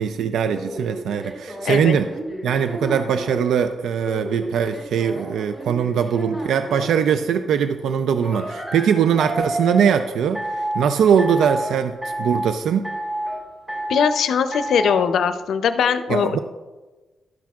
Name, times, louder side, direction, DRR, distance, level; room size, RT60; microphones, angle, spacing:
voice 1, 0.0-2.1 2.4-12.9 16.1-16.4, right 7 dB, 90° right, 9 dB, 0.4 m, -21 dB
sound 1, 0.5-3.5 4.0-7.0 8.2-9.9 10.3-10.8 11.2-11.7 12.0-12.5 12.8-13.4 13.7-14.1 14.5-15.0, right 1 dB, 10° right, 3.5 m, -30 dB
voice 2, 1.6-2.0 13.9-16.4, left 7 dB, 65° left, 10 dB, 0.6 m, -21 dB
12.0 x 10.0 x 2.4 m, 1.2 s
wide cardioid pair, 175°, 0 cm